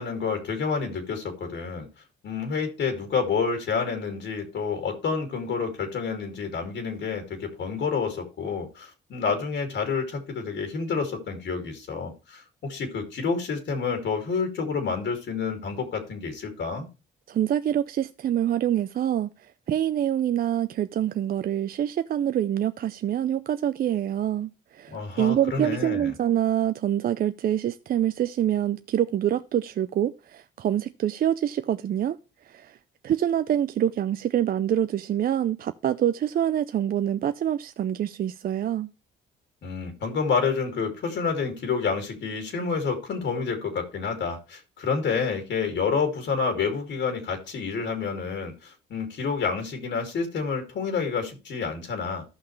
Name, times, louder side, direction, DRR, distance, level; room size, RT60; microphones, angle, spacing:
voice 1, 0.0-1.9 2.2-16.9 24.9-26.1 39.6-52.2, left 5 dB, 65° left, 2.5 m, -29 dB
voice 2, 17.3-19.3 19.7-32.2 32.5-32.8 33.0-38.9, right 10 dB, 50° right, 0.4 m, -26 dB
14.0 x 5.7 x 3.2 m
cardioid pair, 90°, 20 cm